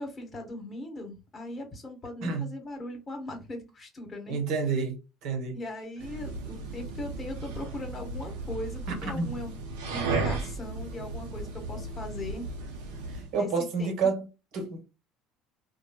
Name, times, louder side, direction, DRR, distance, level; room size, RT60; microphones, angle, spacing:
voice 1, 0.0-4.4 5.5-9.5 9.9-12.5 13.3-13.5 13.8-14.1, left 1 dB, 35° left, 1.2 m, -39 dB
voice 2, 4.3-5.0 5.2-5.6 8.9-9.3 13.1-14.3 14.5-14.8, right 4 dB, 65° right, 1.0 m, -29 dB
sound 1, 6.0-13.3, right 3 dB, 80° right, 0.7 m, -35 dB
3.0 x 2.1 x 2.2 m
hypercardioid pair, 75°, 0 cm